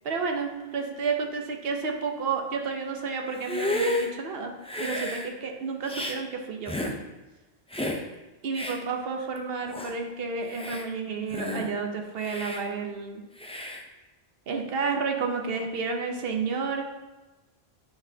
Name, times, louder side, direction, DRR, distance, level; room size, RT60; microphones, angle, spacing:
voice 1, 0.0-4.5 4.8-7.0 8.4-13.2 14.5-16.8, right 5 dB, 65° right, 3 dB, 1.0 m, -31 dB
Hiss, 3.3-4.1 4.6-5.3 5.9-6.2 6.7-7.0 7.7-8.0 8.5-8.8 9.4-9.5 9.7-9.9 10.4-10.9 11.3-11.7 12.2-12.6 13.4-13.8, left 1 dB, 10° left, 0.3 m, -31 dB
9.9 x 4.1 x 2.8 m, 1.2 s
omnidirectional pair, 1.1 m